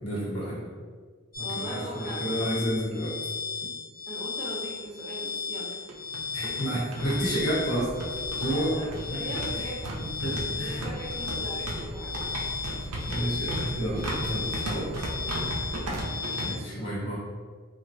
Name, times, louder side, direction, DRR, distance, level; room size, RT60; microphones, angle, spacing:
voice 1, 0.0-0.6 1.4-3.1 6.3-7.9 8.4-8.7 9.1-9.3 10.2-10.9 13.1-14.9 16.4-17.2, equal, 70° left, -5 dB, 1.1 m, -30 dB
sound 1, 1.3-16.5, left 5 dB, 40° left, 0.8 m, -35 dB
voice 2, 1.4-2.3 4.1-5.7 6.4-6.6 8.4-9.9 10.5-12.2 14.5-14.6 15.7-16.1 16.6-16.9, right 1 dB, 20° right, -7 dB, 0.8 m, -40 dB
sound 2, 4.4-4.5 4.8-4.9 5.7-16.5, right 1 dB, 85° right, 0.6 m, -35 dB
sound 3, 7.0-16.0, equal, 15° left, 0.4 m, -42 dB
3.2 x 2.6 x 2.7 m, 1.5 s
head